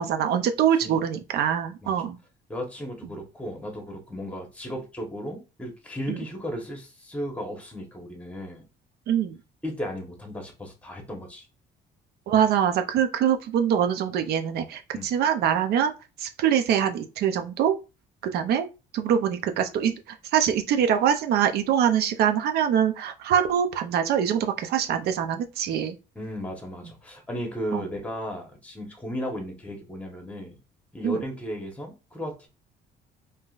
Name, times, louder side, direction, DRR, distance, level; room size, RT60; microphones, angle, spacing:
voice 1, 0.0-2.2 6.1-6.2 9.1-9.3 12.3-15.9 16.2-17.8 18.3-18.7 18.9-20.0 20.3-26.0 27.7-27.8 31.0-31.2, right 9 dB, 70° right, 8 dB, 0.5 m, -24 dB
voice 2, 2.5-8.6 9.6-11.5 14.9-15.1 26.1-30.6 30.9-32.5, equal, 10° left, 3 dB, 1.0 m, -35 dB
3.6 x 2.7 x 2.4 m, 0.30 s
cardioid pair, 110°, 17 cm